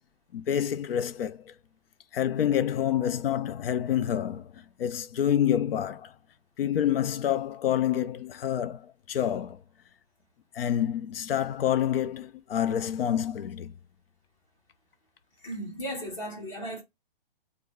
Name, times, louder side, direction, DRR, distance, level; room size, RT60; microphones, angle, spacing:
voice 1, 0.3-1.5 2.1-4.5 4.8-6.1 6.6-9.6 10.5-13.7, left 10 dB, 75° left, 0.5 m, -27 dB
voice 2, 15.4-16.8, equal, 35° left, 1.8 m, -36 dB
3.1 x 2.2 x 3.5 m
hypercardioid pair, 180°, 29 cm